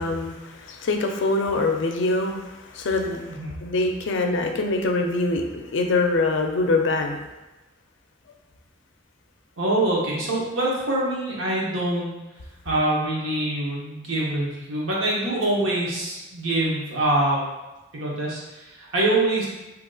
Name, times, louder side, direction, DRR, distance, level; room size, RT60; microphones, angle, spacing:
voice 1, 0.0-3.2 3.6-7.2, left 2 dB, 65° left, 4 dB, 0.4 m, -24 dB
voice 2, 3.3-3.6 9.6-12.1 12.6-17.4 17.9-19.5, right 1 dB, 85° right, -4 dB, 1.0 m, -24 dB
2.8 x 2.3 x 3.7 m, 1.0 s
head